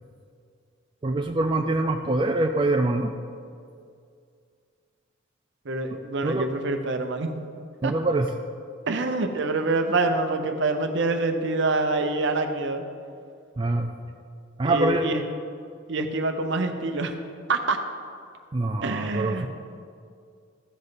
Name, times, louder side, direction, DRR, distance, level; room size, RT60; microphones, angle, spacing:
voice 1, 1.0-3.1 6.2-6.5 7.8-8.3 13.6-13.9 14.6-15.1 18.5-19.5, right 2 dB, 25° right, 4 dB, 0.4 m, -24 dB
voice 2, 5.6-7.3 7.8-7.9 8.9-12.9 14.6-15.2 15.9-17.1 17.5-17.8 18.8-19.5, right 3 dB, 65° right, 6 dB, 0.7 m, -26 dB
14.5 x 5.5 x 3.9 m, 2.3 s
head